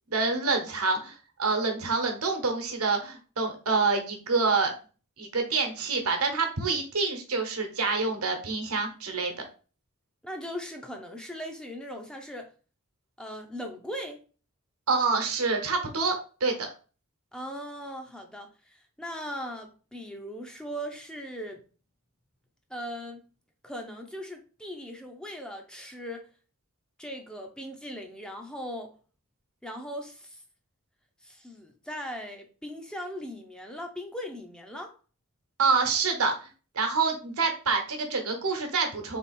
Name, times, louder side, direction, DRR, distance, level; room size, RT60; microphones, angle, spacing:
voice 1, 0.1-4.7 5.2-9.3 14.9-16.7 35.6-36.5 36.7-39.2, right 4 dB, 80° right, 1.1 m, -27 dB
voice 2, 10.2-12.5 13.2-14.2 17.3-21.6 22.7-23.2 23.6-26.3 27.0-28.9 29.6-30.4 31.2-35.0, equal, 5° left, 0.5 m, -39 dB
3.6 x 3.5 x 4.1 m
head